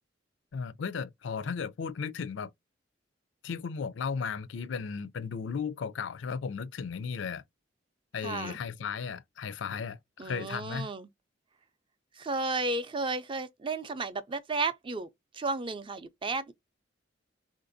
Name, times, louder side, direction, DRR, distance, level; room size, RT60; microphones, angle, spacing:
voice 1, 0.5-2.5 3.4-7.4 8.1-10.9, left 6 dB, 75° left, 0.4 m, -35 dB
voice 2, 8.2-8.6 10.2-11.1 12.1-15.1 15.3-16.5, right 3 dB, 25° right, 0.4 m, -33 dB
3.7 x 2.5 x 2.5 m
head